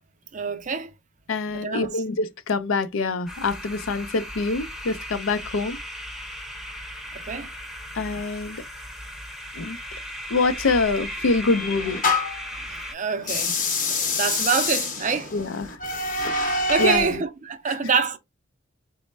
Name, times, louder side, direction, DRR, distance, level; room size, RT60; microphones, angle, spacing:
voice 1, 0.3-0.9 1.5-2.0 7.1-7.5 12.6-13.6 13.9-15.3 16.2-18.2, right 5 dB, 35° right, 0.5 m, -26 dB
voice 2, 1.3-5.8 7.9-8.6 9.5-9.8 10.3-12.0 15.3-15.8 16.8-17.2, left 3 dB, 75° left, 0.5 m, -25 dB
sound 1, 3.3-12.9, equal, ahead, 0.7 m, -37 dB
sound 2, 10.7-12.5 13.2-17.2, left 3 dB, 40° left, 0.8 m, -27 dB
4.0 x 2.1 x 3.2 m
head